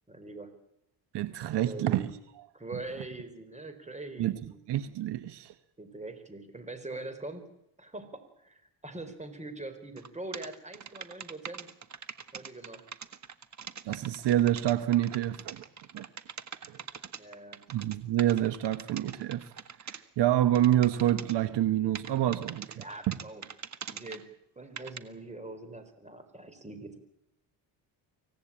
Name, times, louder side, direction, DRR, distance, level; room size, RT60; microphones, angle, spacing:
voice 1, 0.1-0.5 1.7-2.2 2.5-4.6 5.8-7.5 7.8-11.7 12.3-12.8 17.2-17.6 22.8-24.2 24.6-27.0, right 2 dB, 15° right, 4.4 m, -43 dB
voice 2, 1.1-2.1 4.2-4.3 4.7-5.5 13.8-15.6 15.9-16.0 16.7-16.8 17.7-19.5 19.9-23.2, right 13 dB, 70° right, 1.2 m, -27 dB
sound 1, 10.0-10.1 10.3-20.0 20.5-21.3 21.9-24.2 24.8-25.0, right 7 dB, 40° right, 1.7 m, -42 dB
25.0 x 17.5 x 8.8 m
cardioid pair, 105°, 42 cm